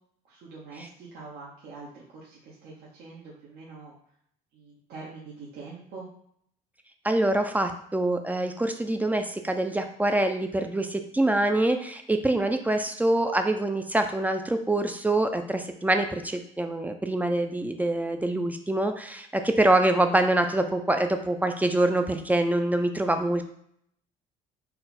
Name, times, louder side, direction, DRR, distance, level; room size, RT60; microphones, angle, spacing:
voice 1, 0.3-3.9 4.5-6.1, right 4 dB, 70° right, -6 dB, 1.0 m, -44 dB
voice 2, 7.0-23.4, right 1 dB, 10° right, 6 dB, 0.4 m, -25 dB
4.2 x 2.3 x 4.1 m, 0.68 s
cardioid pair, 110°, 17 cm